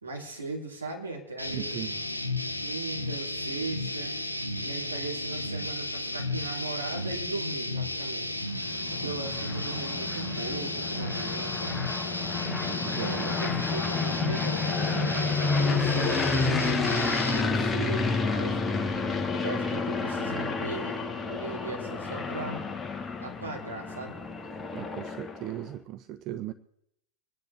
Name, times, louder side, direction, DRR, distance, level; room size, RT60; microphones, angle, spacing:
voice 1, 0.0-1.9 2.6-4.1 4.6-8.3 8.9-11.8 13.0-18.6 19.3-22.7 23.2-24.2, right 3 dB, 75° right, 3.1 m, -38 dB
sound 1, 1.4-17.4, left 1 dB, 85° left, 0.8 m, -33 dB
voice 2, 1.5-1.9 12.6-13.3 24.7-26.5, right 13 dB, 35° right, 0.5 m, -37 dB
sound 2, 8.4-25.6, left 4 dB, 10° left, 1.1 m, -30 dB
25.5 x 9.9 x 3.4 m
figure-of-eight pair, 90°, 0 cm